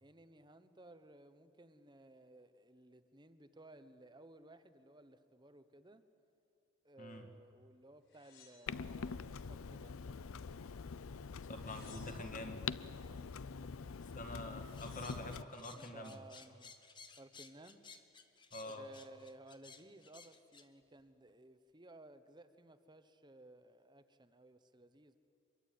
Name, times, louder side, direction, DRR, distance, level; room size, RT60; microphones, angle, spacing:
voice 1, 0.0-6.1 6.8-10.3 12.9-14.1 15.7-16.7 17.2-17.8 18.6-25.2, right 2 dB, 20° right, 11 dB, 1.0 m, -58 dB
voice 2, 7.0-7.3 11.5-12.6 14.1-16.2 18.5-18.9, left 1 dB, 35° left, 5 dB, 2.1 m, -46 dB
sound 1, 8.1-9.4 9.9-10.7 11.4-12.5 14.0-14.1 14.4-15.3 16.0-16.5, left 5 dB, 55° left, 7.8 m, -63 dB
Clock, 8.7-15.4, left 5 dB, 75° left, 0.6 m, -45 dB
sound 2, 14.8-20.7, left 5 dB, 20° left, 1.1 m, -57 dB
25.0 x 22.5 x 9.4 m, 2.6 s
head